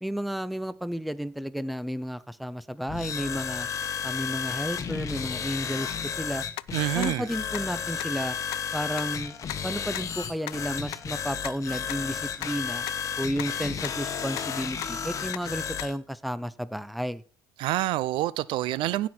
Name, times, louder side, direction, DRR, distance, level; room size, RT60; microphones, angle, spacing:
voice 1, 0.0-3.7 4.0-6.4 6.9-8.4 8.7-9.4 9.6-12.9 13.2-17.2, equal, ahead, 0.5 m, -32 dB
sound 1, 2.9-15.9, left 7 dB, 35° left, 1.3 m, -33 dB
sound 2, 6.1-6.2 6.6-6.7 7.0-7.1 7.5-7.6 8.0-8.1 8.5-8.6 9.0-9.1 9.5-9.6 9.9-10.0 10.5-10.6 10.9-11.0 11.4-11.5 11.9-12.0 12.4-12.5 12.9-13.0 13.4-13.5 13.8-14.0 14.4-14.5 14.8-14.9 15.3-15.4 15.8-15.9, left 21 dB, 80° left, 0.4 m, -35 dB
voice 2, 6.7-7.3 17.6-19.1, right 16 dB, 70° right, 0.5 m, -27 dB
16.0 x 6.1 x 4.4 m
cardioid pair, 110°, 9 cm